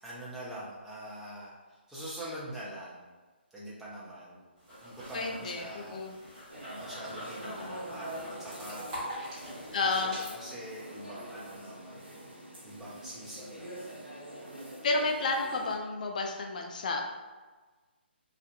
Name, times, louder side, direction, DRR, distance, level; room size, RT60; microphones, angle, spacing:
voice 1, 0.0-3.0 3.5-4.4 4.8-6.2 6.8-8.9 9.8-10.0 10.3-12.1 12.6-13.9 14.5-14.8, right 1 dB, 5° right, -8 dB, 0.5 m, -44 dB
sound 1, 4.6-10.3, equal, 30° right, 1.1 m, -44 dB
voice 2, 5.1-6.1 9.7-10.2 14.8-17.0, left 3 dB, 45° left, 2 dB, 0.3 m, -31 dB
sound 2, 6.5-15.8, right 1 dB, 85° right, 0.7 m, -44 dB
2.4 x 2.1 x 2.8 m, 1.3 s
figure-of-eight pair, 140°, 6 cm